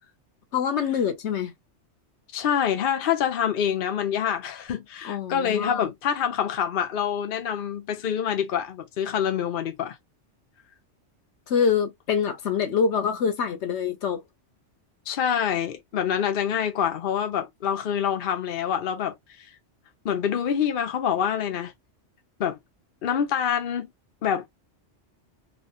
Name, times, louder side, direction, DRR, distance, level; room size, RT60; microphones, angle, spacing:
voice 1, 0.5-1.5 5.0-5.9 11.5-14.2, left 6 dB, 70° left, 1.0 m, -25 dB
voice 2, 2.3-10.0 15.1-19.1 20.0-21.7 22.4-22.6 23.0-23.9 24.2-24.4, left 8 dB, 55° left, 0.7 m, -26 dB
3.0 x 2.4 x 2.5 m
omnidirectional pair, 1.2 m